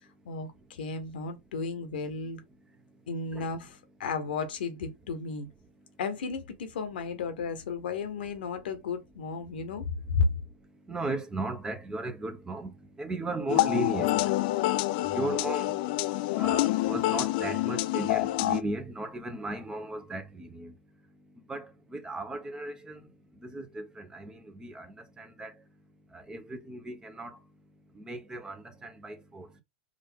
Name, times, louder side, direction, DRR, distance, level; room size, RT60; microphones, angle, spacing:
voice 1, 0.2-2.4 3.1-5.5 6.0-10.3, left 4 dB, 70° left, 1.0 m, -33 dB
voice 2, 10.9-20.7 21.5-23.1 23.4-25.5 26.1-27.4 27.9-29.6, right 2 dB, 15° right, 0.8 m, -37 dB
sound 1, 13.5-18.6, left 16 dB, 55° left, 0.4 m, -27 dB
4.9 x 2.6 x 3.5 m
hypercardioid pair, 95°, 5 cm